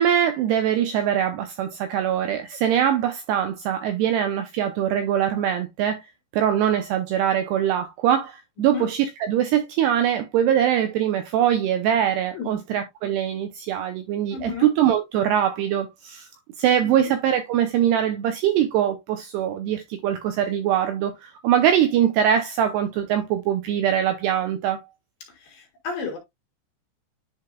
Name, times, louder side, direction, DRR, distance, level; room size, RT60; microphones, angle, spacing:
voice 1, 0.0-6.0 6.3-16.3 16.6-24.8, right 10 dB, 85° right, 2.4 m, -22 dB
voice 2, 14.3-14.7 16.8-17.1 25.3-26.2, left 5 dB, 60° left, 3.0 m, -33 dB
10.5 x 4.9 x 2.3 m
omnidirectional pair, 5.5 m